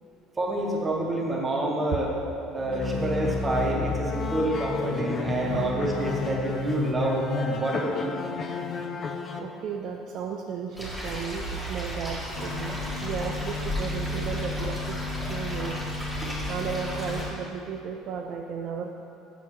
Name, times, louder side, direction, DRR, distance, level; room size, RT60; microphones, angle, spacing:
voice 1, 0.4-2.1 2.5-8.2, right 1 dB, 20° right, -1 dB, 0.8 m, -28 dB
sound 1, 2.6-9.4, left 4 dB, 30° left, 0.4 m, -31 dB
voice 2, 5.0-5.8 9.4-15.8 16.4-18.9, right 6 dB, 45° right, 2 dB, 0.3 m, -35 dB
sound 2, 10.8-17.3, equal, 5° left, 1.1 m, -34 dB
sound 3, 12.3-17.8, left 4 dB, 55° left, 0.7 m, -35 dB
7.5 x 5.6 x 3.2 m, 2.7 s
cardioid pair, 150°, 0 cm